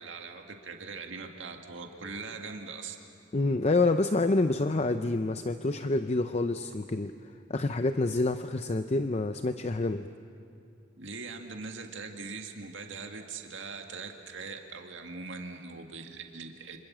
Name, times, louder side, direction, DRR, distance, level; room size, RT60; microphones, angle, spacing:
voice 1, 0.0-3.0 11.0-16.8, right 4 dB, 85° right, 4 dB, 1.9 m, -41 dB
voice 2, 3.3-7.1 7.5-10.1, left 2 dB, 35° left, 9 dB, 0.6 m, -27 dB
27.5 x 26.0 x 7.4 m, 2.5 s
head